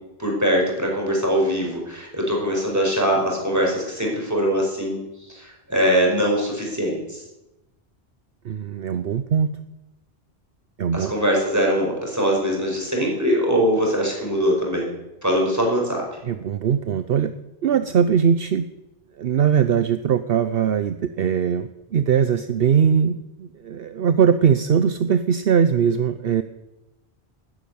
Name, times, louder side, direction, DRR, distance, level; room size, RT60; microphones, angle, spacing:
voice 1, 0.2-5.0 5.3-7.2 10.9-14.9 15.2-16.0, equal, 15° right, -1 dB, 5.0 m, -22 dB
voice 2, 8.4-9.6 10.8-11.1 16.2-17.3 17.6-18.7 19.2-26.4, right 7 dB, 65° right, 11 dB, 0.9 m, -20 dB
12.5 x 11.0 x 9.4 m, 0.98 s
omnidirectional pair, 1.1 m